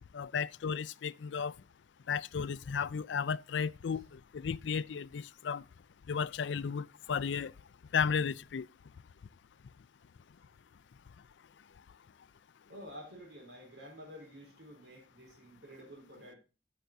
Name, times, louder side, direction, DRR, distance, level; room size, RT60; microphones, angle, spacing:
voice 1, 0.1-1.5 2.1-5.6 6.1-7.5 7.9-8.6, left 6 dB, 85° left, 0.4 m, -34 dB
voice 2, 12.7-16.4, equal, 80° right, 4.4 m, -50 dB
16.0 x 6.0 x 2.6 m
head